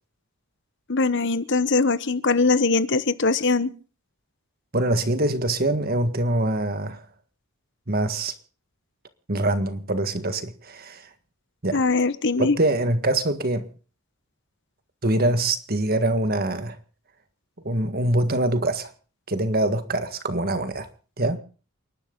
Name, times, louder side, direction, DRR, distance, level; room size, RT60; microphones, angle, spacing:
voice 1, 0.9-3.7 11.7-12.6, left 3 dB, 55° left, 1.1 m, -21 dB
voice 2, 4.7-7.0 7.9-8.3 9.3-11.0 11.6-11.8 12.4-13.7 15.0-16.8 17.6-18.9 19.3-20.9 21.2-21.4, right 1 dB, 45° right, 1.8 m, -24 dB
29.0 x 11.5 x 3.9 m
head